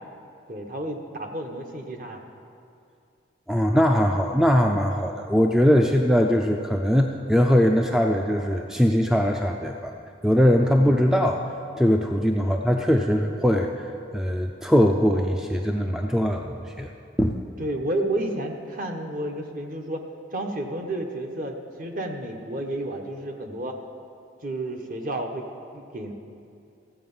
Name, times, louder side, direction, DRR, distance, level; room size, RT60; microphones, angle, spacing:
voice 1, 0.5-2.2 12.4-12.6 17.6-20.1 20.3-23.8 24.4-25.4 25.7-26.1, right 1 dB, 45° right, 3 dB, 1.0 m, -31 dB
voice 2, 3.5-9.9 10.2-11.4 11.8-13.7 14.1-16.9 17.2-17.4, equal, 5° right, 2 dB, 0.4 m, -21 dB
15.0 x 7.7 x 5.5 m, 2.5 s
head